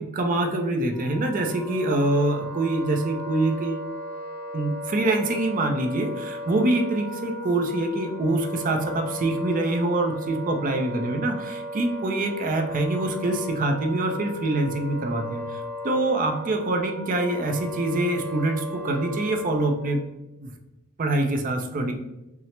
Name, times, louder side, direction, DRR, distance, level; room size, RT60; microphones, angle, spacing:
voice 1, 0.0-3.9 4.5-20.0 20.4-20.5 21.0-21.9, right 2 dB, 40° right, 5 dB, 0.4 m, -25 dB
Wind instrument woodwind instrument, 0.9-20.0, equal, 10° left, 0.7 m, -36 dB
5.6 x 2.0 x 3.2 m, 0.97 s
head